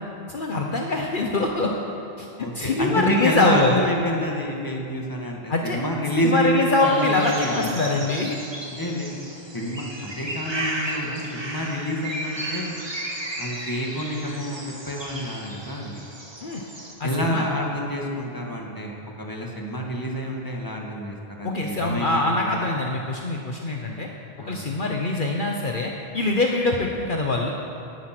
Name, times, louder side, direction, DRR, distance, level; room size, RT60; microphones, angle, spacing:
voice 1, 0.3-1.7 2.2-2.3 2.5-3.8 5.5-5.8 6.2-8.4 16.4-16.6 17.0-17.4 21.4-24.1 24.4-27.5, left 2 dB, 55° left, 1 dB, 1.2 m, -24 dB
voice 2, 2.4-8.0 8.7-9.1 9.5-12.8 13.4-14.6 14.9-16.0 17.0-22.7 24.4-24.7, equal, 20° left, -1 dB, 2.0 m, -28 dB
sound 1, 6.8-16.9, right 1 dB, 25° right, 1.8 m, -34 dB
18.5 x 11.0 x 6.1 m, 2.7 s
omnidirectional pair, 1.0 m